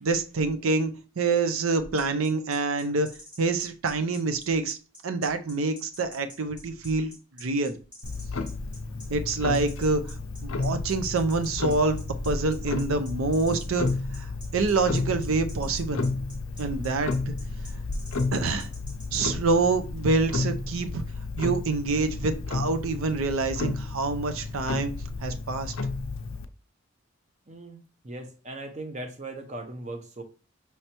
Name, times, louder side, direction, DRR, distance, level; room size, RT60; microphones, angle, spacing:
voice 1, 0.0-3.1 3.4-4.8 5.0-7.8 9.1-10.2 10.4-16.2 16.6-17.3 18.3-18.7 19.1-21.0 21.4-24.9 25.2-25.7, right 3 dB, 80° right, 9 dB, 0.6 m, -26 dB
sound 1, 2.0-19.2, left 1 dB, 5° right, 1.4 m, -47 dB
Clock, 8.0-26.4, left 3 dB, 70° left, 0.5 m, -32 dB
voice 2, 27.5-30.2, right 2 dB, 35° right, 4 dB, 0.7 m, -39 dB
5.6 x 3.2 x 2.9 m, 0.35 s
head